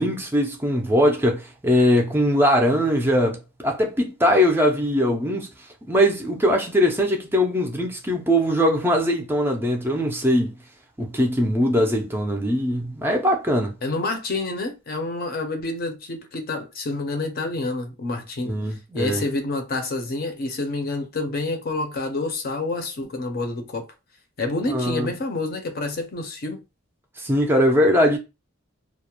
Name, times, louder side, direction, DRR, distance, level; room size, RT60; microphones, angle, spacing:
voice 1, 0.0-5.5 5.9-10.5 11.0-13.7 18.5-19.2 24.7-25.1 27.2-28.2, equal, 10° right, 0.4 m, -21 dB
voice 2, 13.8-18.6 18.9-23.8 24.4-26.6, left 2 dB, 45° left, 0.5 m, -28 dB
2.3 x 2.1 x 2.8 m
head